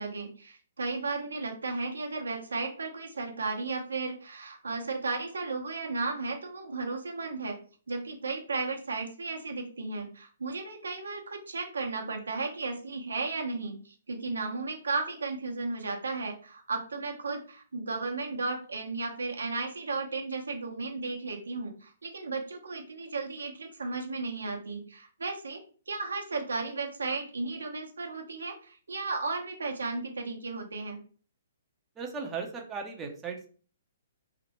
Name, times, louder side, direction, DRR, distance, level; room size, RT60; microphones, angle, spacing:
voice 1, 0.0-7.6 7.9-25.6 25.9-31.0, right 3 dB, 85° right, 3 dB, 0.7 m, -34 dB
voice 2, 32.0-33.5, right 5 dB, 15° right, 1 dB, 0.5 m, -37 dB
2.9 x 2.0 x 2.9 m, 0.40 s
hypercardioid pair, 130°, 0 cm